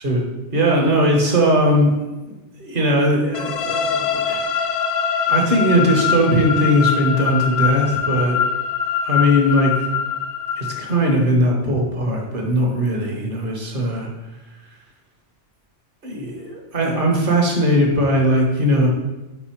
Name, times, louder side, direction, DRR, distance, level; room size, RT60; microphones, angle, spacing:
voice 1, 0.5-1.9 2.3-4.4 5.3-8.4 9.0-9.7 10.6-14.1 16.0-18.9, equal, 45° right, 0 dB, 1.2 m, -19 dB
sound 1, 3.3-11.1, left 7 dB, 65° left, 0.8 m, -23 dB
4.9 x 4.7 x 4.4 m, 1.1 s
omnidirectional pair, 1.2 m